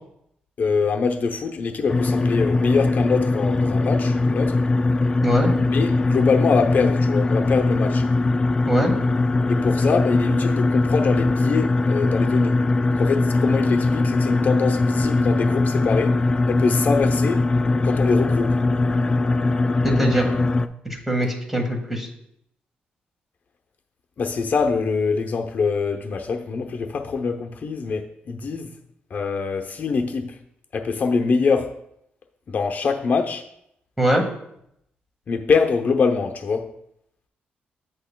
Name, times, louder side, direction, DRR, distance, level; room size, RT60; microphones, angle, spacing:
voice 1, 0.6-4.6 5.6-8.0 9.5-12.6 13.0-17.5 17.8-18.6 24.2-28.7 29.1-30.4 30.7-31.8 32.5-33.4 35.3-36.8, left 5 dB, 50° left, 5 dB, 0.7 m, -23 dB
sound 1, 1.9-20.7, left 2 dB, 25° left, 0.4 m, -21 dB
voice 2, 19.8-20.3 20.8-22.1 34.0-34.2, equal, 5° right, 2 dB, 1.7 m, -22 dB
9.0 x 7.9 x 2.3 m, 0.75 s
cardioid pair, 100°, 4 cm